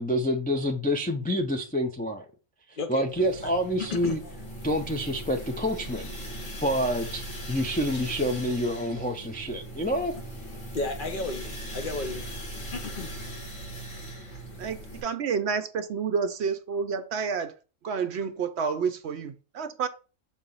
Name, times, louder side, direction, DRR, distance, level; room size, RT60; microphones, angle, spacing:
voice 1, 0.0-2.3 2.7-4.2 4.6-6.1 6.6-10.2, equal, 15° left, 0.3 m, -28 dB
sound 1, 3.1-15.0, right 1 dB, 75° left, 2.3 m, -39 dB
voice 2, 3.8-4.3 8.2-8.4 10.7-12.3 12.7-13.1 14.3-14.4, left 3 dB, 50° left, 0.8 m, -33 dB
voice 3, 14.6-17.5 17.8-19.9, right 6 dB, 65° right, 0.8 m, -29 dB
6.6 x 2.9 x 5.4 m
omnidirectional pair, 1.3 m